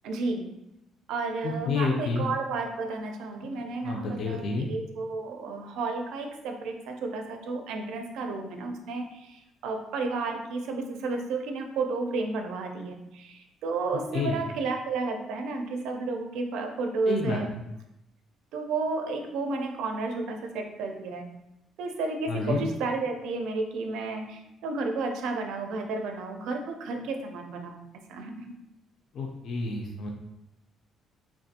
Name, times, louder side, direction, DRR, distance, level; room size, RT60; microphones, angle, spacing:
voice 1, 0.0-0.5 1.1-17.5 18.5-21.3 21.8-28.5, right 3 dB, 80° right, 4 dB, 0.4 m, -32 dB
voice 2, 1.4-2.3 3.8-4.7 14.1-14.3 17.1-17.6 22.3-22.6 29.1-30.1, left 3 dB, 45° left, 0 dB, 0.4 m, -29 dB
3.4 x 2.5 x 2.7 m, 0.87 s
cardioid pair, 175°, 0 cm